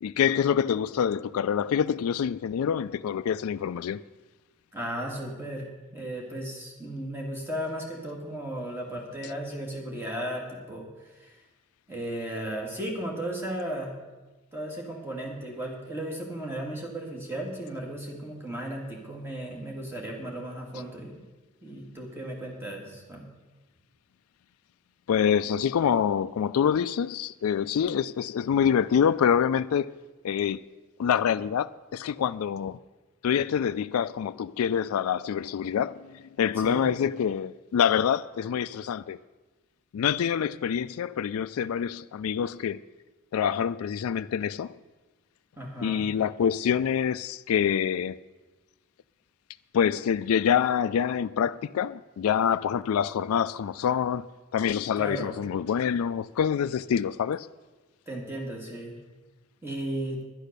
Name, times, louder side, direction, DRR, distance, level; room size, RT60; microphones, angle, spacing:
voice 1, 0.0-4.0 25.1-29.9 30.2-30.6 31.0-32.8 33.2-39.2 39.9-42.8 43.3-44.7 45.8-48.2 49.7-54.3 54.5-57.5, left 8 dB, 85° left, 0.3 m, -26 dB
voice 2, 4.7-11.4 11.9-13.9 14.5-21.2 21.6-23.2 36.6-36.9 45.6-46.1 55.0-55.3 58.1-58.9 59.6-60.2, right 1 dB, 10° right, 2.0 m, -35 dB
10.5 x 10.0 x 6.6 m
head